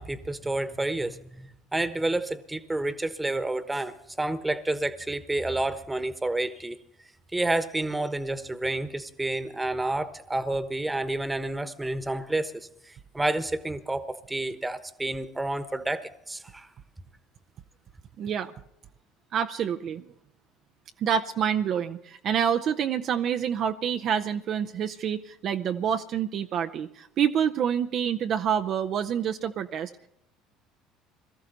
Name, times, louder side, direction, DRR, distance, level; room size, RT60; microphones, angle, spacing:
voice 1, 0.0-6.8 7.3-12.5 12.9-16.7, right 2 dB, 10° right, 13 dB, 1.2 m, -29 dB
voice 2, 18.2-18.5 19.3-20.1 21.0-29.9, right 8 dB, 50° right, 6 dB, 0.6 m, -27 dB
21.5 x 14.0 x 4.0 m, 0.78 s
figure-of-eight pair, 60°, 0 cm